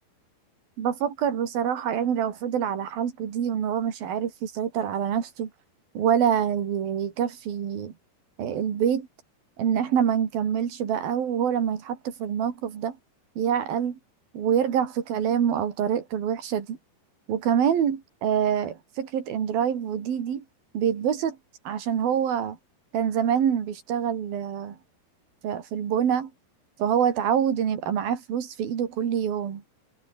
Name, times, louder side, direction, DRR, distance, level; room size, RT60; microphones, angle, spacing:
voice 1, 0.8-5.5 5.9-7.9 8.4-9.1 9.6-13.0 13.4-14.0 14.3-16.8 17.3-20.4 20.7-21.4 21.7-22.6 22.9-24.8 25.4-26.3 26.8-29.6, right 8 dB, 65° right, 4.6 m, -26 dB
omnidirectional pair, 4.7 m